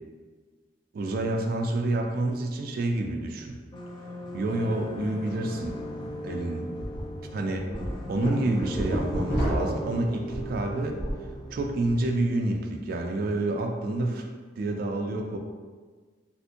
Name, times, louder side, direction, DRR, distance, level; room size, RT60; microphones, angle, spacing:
voice 1, 0.9-3.6 4.3-6.7 7.3-7.7 8.1-11.0 11.5-14.2 14.6-15.4, right 2 dB, 55° right, 2 dB, 0.3 m, -28 dB
sound 1, 3.7-11.7, left 1 dB, 25° left, 0.4 m, -39 dB
sound 2, 5.6-5.7 6.1-6.2 6.8-7.0 7.5-11.3 11.6-12.1, right 1 dB, 55° left, 1.0 m, -30 dB
3.3 x 2.5 x 2.7 m, 1.5 s
head